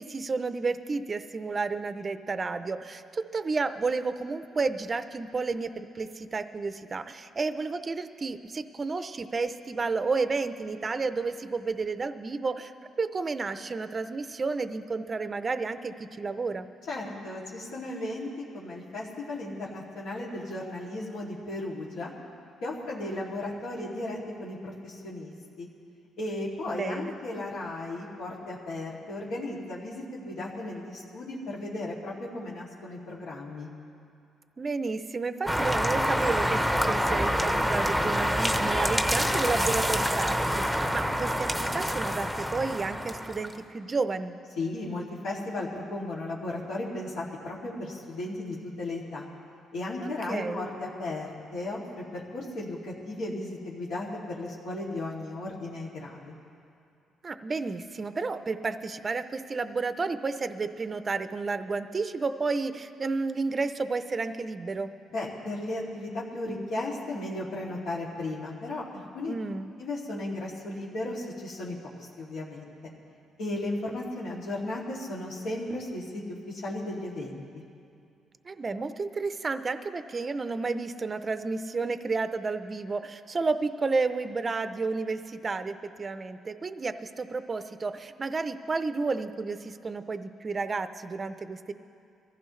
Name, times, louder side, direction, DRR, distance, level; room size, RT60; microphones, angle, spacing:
voice 1, 0.0-12.7 13.0-16.7 26.7-27.2 34.6-44.4 50.3-50.7 57.2-64.9 69.3-69.7 78.4-91.7, right 4 dB, 30° right, 10 dB, 0.6 m, -31 dB
voice 2, 16.9-22.1 22.6-25.7 26.2-33.7 44.6-49.3 49.7-56.3 65.1-69.3 69.8-71.8 72.2-72.7 73.4-77.4, left 2 dB, 75° left, -5 dB, 2.6 m, -35 dB
sound 1, 35.5-43.6, equal, 5° left, 0.8 m, -27 dB
23.0 x 15.0 x 3.2 m, 2.5 s
cardioid pair, 120°, 0 cm